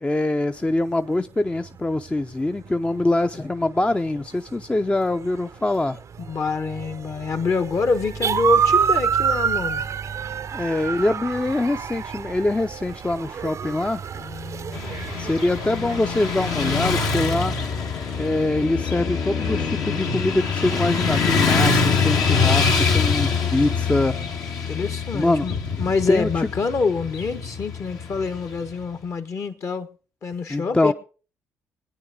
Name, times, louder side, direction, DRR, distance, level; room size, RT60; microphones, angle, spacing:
voice 1, 0.0-6.0 10.5-14.0 15.2-17.6 18.2-24.2 25.1-25.5 26.1-26.5 30.5-30.9, left 2 dB, 15° left, 0.6 m, -24 dB
sound 1, 1.4-16.8, right 7 dB, 50° right, 0.6 m, -28 dB
voice 2, 6.3-9.9 14.1-14.8 22.3-22.6 24.7-25.5 25.8-29.9 30.2-30.9, left 4 dB, 50° left, 1.4 m, -26 dB
Motorcycle / Traffic noise roadway noise, 14.7-28.8, left 5 dB, 65° left, 1.6 m, -24 dB
21.0 x 9.4 x 3.7 m
hypercardioid pair, 45°, 7 cm